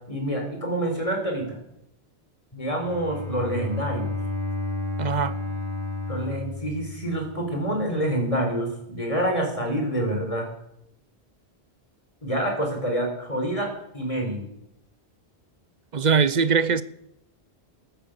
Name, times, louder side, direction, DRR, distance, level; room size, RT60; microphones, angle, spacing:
voice 1, 0.1-1.6 2.5-4.1 6.1-10.5 12.2-14.5, right 1 dB, 30° left, 4.6 m, -27 dB
Bowed string instrument, 2.7-7.7, left 3 dB, 55° left, 3.0 m, -32 dB
voice 2, 5.0-5.4 15.9-16.8, right 5 dB, 45° right, 0.8 m, -21 dB
15.0 x 12.5 x 6.8 m
omnidirectional pair, 1.1 m